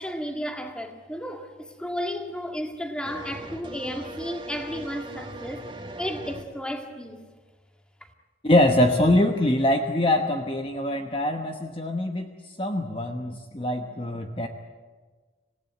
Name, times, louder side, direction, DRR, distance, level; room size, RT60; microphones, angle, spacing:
voice 1, 0.0-5.7 6.0-7.2, equal, 5° left, 1.9 m, -33 dB
sound 1, 3.0-6.4, right 2 dB, 25° right, 1.5 m, -39 dB
voice 2, 8.4-12.3 12.6-14.5, left 1 dB, 30° left, 1.1 m, -23 dB
26.5 x 17.0 x 9.4 m
head